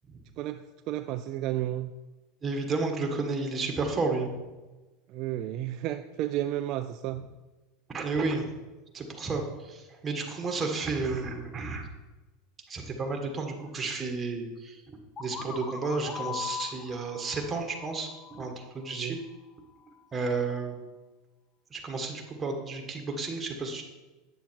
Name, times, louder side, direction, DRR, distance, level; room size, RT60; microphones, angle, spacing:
voice 1, 0.4-1.9 5.1-7.3 18.9-19.2, right 13 dB, 55° right, 8 dB, 0.4 m, -32 dB
voice 2, 2.4-4.4 7.9-8.4 8.9-11.8 12.7-14.8 15.2-19.2 20.1-20.7 21.7-23.8, right 3 dB, 20° right, 3 dB, 1.7 m, -32 dB
sound 1, 15.2-18.9, left 7 dB, 30° left, 1.1 m, -40 dB
9.3 x 7.0 x 4.6 m, 1.2 s
supercardioid pair, 120°, 0 cm